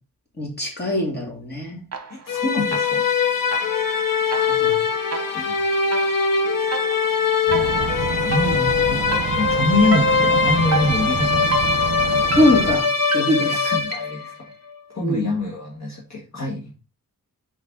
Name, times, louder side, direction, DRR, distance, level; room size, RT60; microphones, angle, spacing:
voice 1, 0.4-1.8 4.3-4.8 8.4-8.7 12.3-12.9 13.1-13.7 15.0-15.3, left 1 dB, 30° left, -2 dB, 2.9 m, -22 dB
sound 1, 1.9-2.4 2.7-14.3, right 4 dB, 45° right, 1.1 m, -32 dB
voice 2, 2.1-3.0 5.3-5.5 8.2-8.6 8.8-11.7 12.0-12.1 13.6-14.4 14.9-16.7, left 2 dB, 50° left, -2 dB, 1.6 m, -25 dB
sound 2, 2.3-14.4, left 5 dB, 70° left, 0.9 m, -22 dB
sound 3, 7.5-12.8, right 6 dB, 60° right, 0.7 m, -29 dB
6.1 x 4.7 x 3.7 m, 0.30 s
wide cardioid pair, 115°, 35 cm